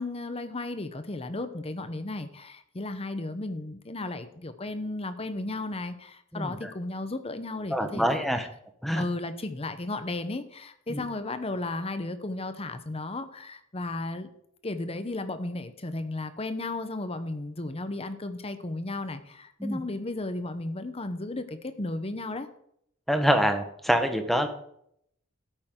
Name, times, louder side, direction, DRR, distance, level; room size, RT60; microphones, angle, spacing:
voice 1, 0.0-8.3 8.9-14.3 14.6-22.5, left 2 dB, 30° left, 10 dB, 0.9 m, -34 dB
voice 2, 6.3-6.7 7.7-8.5 8.8-9.0 10.9-11.1 19.6-19.8 23.1-24.5, equal, ahead, 6 dB, 1.1 m, -25 dB
12.5 x 9.0 x 3.8 m, 0.70 s
head